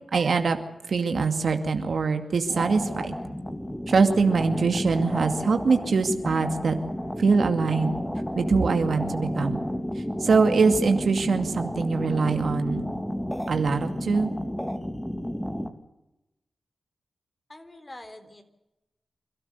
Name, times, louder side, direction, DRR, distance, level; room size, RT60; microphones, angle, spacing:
voice 1, 0.1-0.6 0.9-3.2 3.9-6.7 7.2-8.0 8.4-9.6 10.2-12.9 13.5-14.3, right 4 dB, 70° right, 7 dB, 2.3 m, -23 dB
sound 1, 2.5-15.7, equal, 10° left, 2.8 m, -31 dB
voice 2, 17.5-18.4, left 1 dB, 30° left, 8 dB, 3.9 m, -44 dB
28.5 x 12.5 x 8.2 m, 0.94 s
cardioid pair, 40°, 0 cm